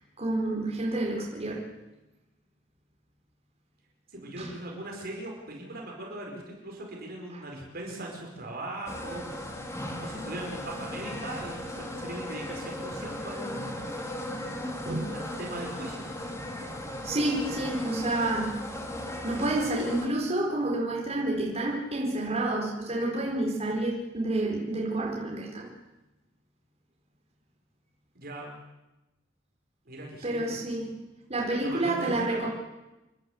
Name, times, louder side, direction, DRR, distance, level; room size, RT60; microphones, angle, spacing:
voice 1, 0.2-1.6 4.4-4.6 7.3-7.4 14.9-15.2 17.0-18.6 19.2-25.7 30.2-30.9 31.3-32.5, right 2 dB, 35° right, -2 dB, 4.7 m, -29 dB
voice 2, 4.1-9.2 9.8-13.6 15.1-16.1 28.1-28.5 29.8-30.6 31.6-32.5, right 1 dB, 50° right, -1 dB, 4.9 m, -39 dB
sound 1, 8.9-20.1, left 1 dB, 15° left, 2.8 m, -37 dB
29.0 x 11.5 x 8.0 m, 1.0 s
head